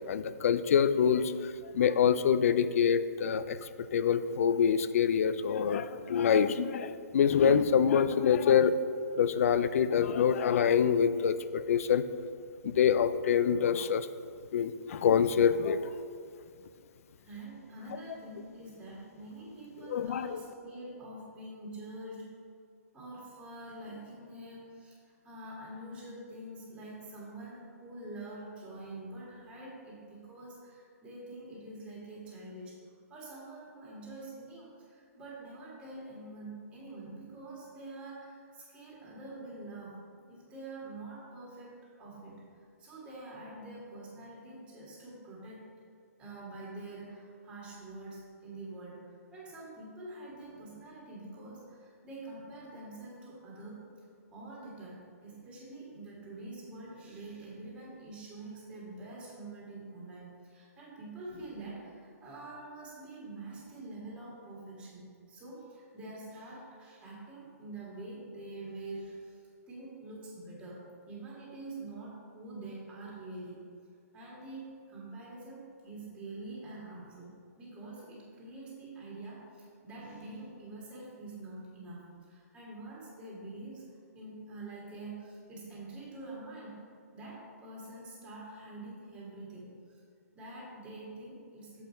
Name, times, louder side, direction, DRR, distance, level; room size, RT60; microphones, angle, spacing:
voice 1, 0.1-3.6 3.9-8.7 9.2-12.0 12.6-14.1 14.5-15.9 19.9-20.4, left 7 dB, 60° left, 13 dB, 0.4 m, -26 dB
voice 2, 17.2-22.3 22.9-32.8 33.1-40.0 40.3-45.6 46.2-53.9 54.3-73.6 74.1-83.8 84.1-86.8 87.1-89.9 90.3-91.8, right 2 dB, 15° right, -5 dB, 1.9 m, -46 dB
7.1 x 5.3 x 4.5 m, 2.3 s
hypercardioid pair, 150°, 9 cm